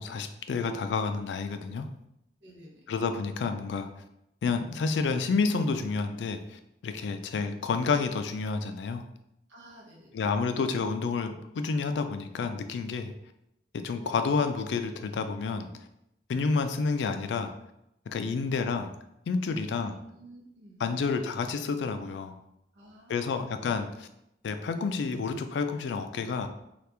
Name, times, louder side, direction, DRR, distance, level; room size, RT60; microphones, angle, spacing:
voice 1, 0.0-1.9 2.9-3.9 4.4-9.0 10.1-13.1 13.7-15.7 16.3-17.5 18.1-18.9 19.3-20.0 20.8-22.4 23.1-24.1 24.4-26.5, left 4 dB, 75° left, 8 dB, 0.3 m, -29 dB
voice 2, 2.4-2.9 7.0-7.2 9.5-10.2 18.2-18.5 19.5-21.0 22.7-23.6, equal, 85° right, -3 dB, 0.8 m, -52 dB
2.9 x 2.4 x 3.3 m, 0.82 s
head